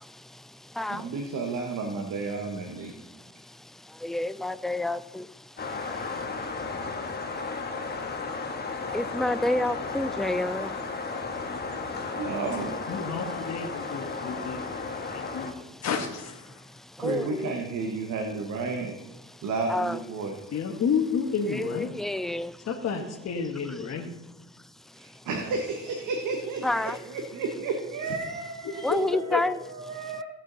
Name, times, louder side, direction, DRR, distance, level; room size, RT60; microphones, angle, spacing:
voice 1, 0.3-1.1 2.7-10.8 11.7-12.2 13.9-15.9 16.5-17.6 19.2-19.4 19.7-20.0 21.5-22.7 23.8-24.0 24.5-25.3 26.6-27.0 28.8-29.6 29.9-30.2, left 1 dB, ahead, 0.3 m, -33 dB
voice 2, 0.9-2.9 12.2-12.8 17.0-18.9 19.4-20.5 25.0-30.2, right 4 dB, 75° right, 1.4 m, -32 dB
sound 1, 5.6-15.5, left 4 dB, 35° left, 1.5 m, -34 dB
voice 3, 12.9-14.6 15.0-16.5 20.5-21.9 22.7-24.1 28.6-29.4, left 6 dB, 60° left, 1.5 m, -30 dB
16.5 x 6.2 x 4.0 m
cardioid pair, 90°, 30 cm